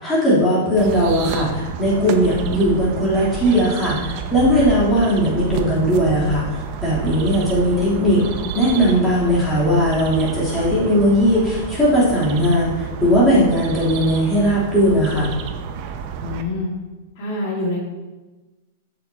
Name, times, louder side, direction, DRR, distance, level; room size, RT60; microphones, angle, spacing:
voice 1, 0.0-8.2 8.5-15.3, equal, 10° left, -10 dB, 3.2 m, -18 dB
sound 1, 0.8-16.4, right 6 dB, 35° right, 0.7 m, -30 dB
voice 2, 16.2-16.7 17.2-17.8, left 2 dB, 45° left, -3 dB, 1.9 m, -25 dB
13.5 x 6.7 x 2.8 m, 1.2 s
supercardioid pair, 170°, 0 cm